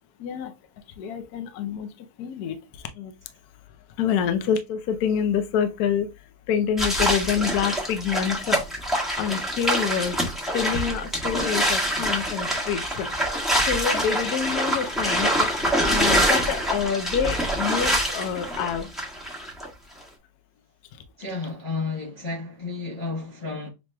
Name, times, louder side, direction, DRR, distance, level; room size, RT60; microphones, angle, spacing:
voice 1, 0.2-0.5 1.0-3.1 4.0-8.6 9.1-10.2 10.5-13.1 13.6-15.5 15.8-18.9 20.9-21.0, left 8 dB, 70° left, 0.9 m, -27 dB
sound 1, 6.8-19.7, equal, ahead, 1.0 m, -25 dB
voice 2, 21.2-23.7, left 3 dB, 25° left, 0.9 m, -32 dB
6.8 x 2.9 x 2.2 m
omnidirectional pair, 2.2 m